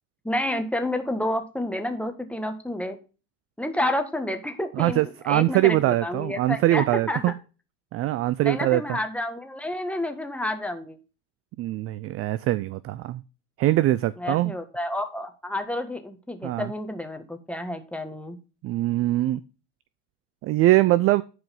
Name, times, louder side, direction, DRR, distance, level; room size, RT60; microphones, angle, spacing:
voice 1, 0.2-3.0 3.6-7.3 8.4-11.0 14.2-18.4, left 1 dB, 5° left, 6 dB, 1.6 m, -30 dB
voice 2, 4.8-7.3 7.9-9.0 11.6-13.2 13.6-14.5 16.4-16.7 18.6-19.4 20.4-21.2, right 16 dB, 35° right, 18 dB, 0.4 m, -22 dB
11.0 x 4.8 x 5.3 m, 0.34 s
hypercardioid pair, 80°, 46 cm